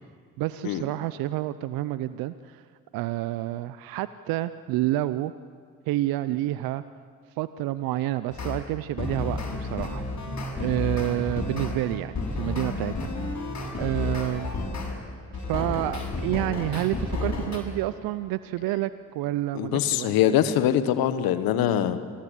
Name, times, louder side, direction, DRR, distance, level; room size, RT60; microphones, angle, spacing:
voice 1, 0.4-2.6 2.9-5.3 5.9-6.8 7.4-10.1 10.6-13.4 13.8-14.5 15.3-20.1, right 15 dB, 75° right, 14 dB, 0.7 m, -29 dB
sound 1, 8.3-8.6 9.0-14.9 15.3-17.6, left 3 dB, 50° left, 7.4 m, -31 dB
voice 2, 19.5-22.0, left 11 dB, 75° left, 12 dB, 1.4 m, -23 dB
27.0 x 19.5 x 8.4 m, 2.1 s
hypercardioid pair, 45°, 35 cm